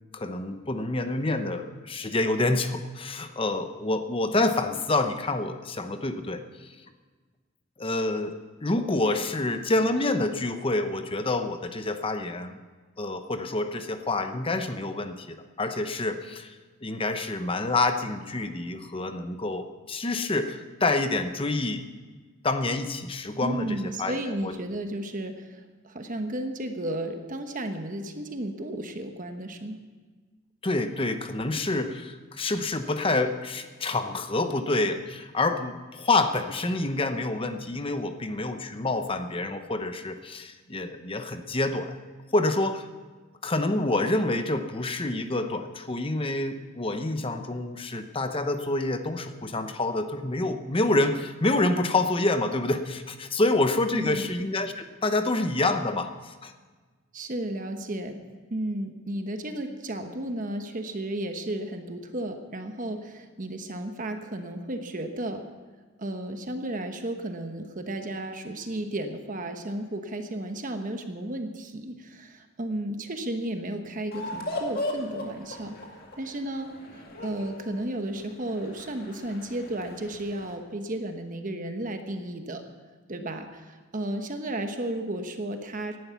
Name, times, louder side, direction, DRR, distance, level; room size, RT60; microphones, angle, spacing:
voice 1, 0.1-6.4 7.8-8.3 8.6-12.6 13.0-16.5 16.8-21.8 22.4-24.1 24.4-24.5 30.6-42.0 42.3-42.9 43.4-56.5, left 2 dB, 25° left, 8 dB, 0.9 m, -27 dB
voice 2, 23.4-29.8 53.9-54.3 57.1-58.2 58.5-65.4 66.0-75.7 76.2-82.6 83.1-86.0, right 1 dB, 40° right, 6 dB, 1.1 m, -33 dB
sound 1, 74.1-80.5, left 1 dB, 45° left, 2.2 m, -37 dB
17.5 x 11.5 x 5.8 m, 1.4 s
head